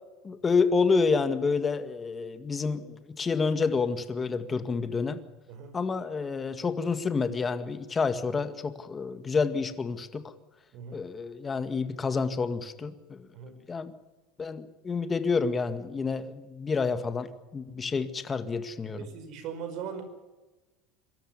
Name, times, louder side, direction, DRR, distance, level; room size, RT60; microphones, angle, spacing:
voice 1, 0.2-5.2 5.7-10.2 10.9-13.3 13.7-13.9 14.4-19.0, left 4 dB, 25° left, 10 dB, 1.9 m, -29 dB
voice 2, 10.7-11.1 13.3-13.6 19.0-20.0, right 7 dB, 60° right, 8 dB, 5.3 m, -39 dB
23.5 x 13.0 x 9.6 m, 1.2 s
supercardioid pair, 110°, 0 cm